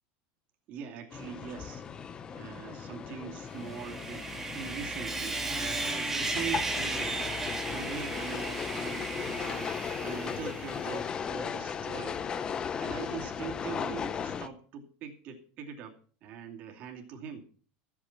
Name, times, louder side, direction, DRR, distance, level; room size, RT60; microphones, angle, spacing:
voice 1, 0.7-9.7 10.0-12.2 12.8-17.4, right 7 dB, 35° right, 2 dB, 2.7 m, -42 dB
sound 1, 1.1-14.5, left 7 dB, 15° left, 0.6 m, -37 dB
Sawing, 3.5-11.0, right 3 dB, 5° right, 1.5 m, -35 dB
14.5 x 8.6 x 5.8 m, 0.42 s
supercardioid pair, 180°, 5 cm